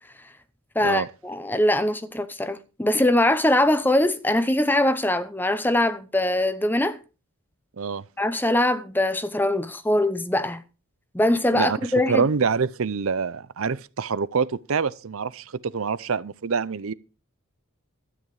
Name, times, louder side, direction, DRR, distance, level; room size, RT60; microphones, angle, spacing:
voice 1, 0.7-7.0 8.2-10.6 11.1-12.3, left 1 dB, 10° left, 0.7 m, -22 dB
voice 2, 11.5-16.9, right 5 dB, 70° right, 0.6 m, -26 dB
12.5 x 10.0 x 4.8 m
head